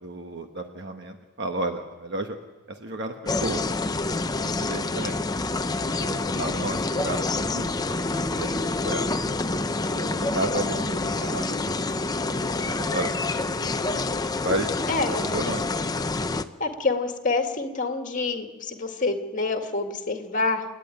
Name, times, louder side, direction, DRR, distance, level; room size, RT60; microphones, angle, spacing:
voice 1, 0.0-2.4 2.7-3.7 4.1-4.2 4.4-5.2 6.0-7.8 8.2-8.5 8.8-9.1 9.9-12.1 12.5-14.0 14.3-14.7 15.2-15.7, right 1 dB, 50° right, 5 dB, 1.2 m, -32 dB
sound 1, 3.3-16.4, left 3 dB, 15° left, 0.6 m, -27 dB
voice 2, 6.2-6.9 14.9-15.2 16.6-20.6, left 3 dB, 35° left, 4 dB, 2.0 m, -27 dB
28.5 x 11.0 x 9.2 m, 1.4 s
head